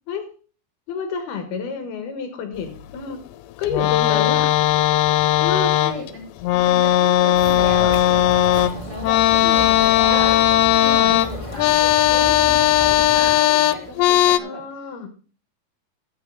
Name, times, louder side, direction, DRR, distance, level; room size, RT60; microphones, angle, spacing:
voice 1, 0.9-3.2 3.6-4.5 5.4-5.8 9.4-9.8 10.9-11.2 14.3-15.1, left 6 dB, 70° left, 6 dB, 3.2 m, -29 dB
sound 1, 3.6-6.1 6.4-14.4, left 13 dB, 85° left, 2.9 m, -17 dB
voice 2, 4.1-4.4 5.7-6.2 6.5-9.2 9.6-10.4 10.8-11.8 12.2-14.6, left 1 dB, 35° right, -1 dB, 4.9 m, -35 dB
sound 2, 7.3-13.3, left 2 dB, 20° left, 0.9 m, -31 dB
14.5 x 7.9 x 3.9 m, 0.38 s
omnidirectional pair, 4.9 m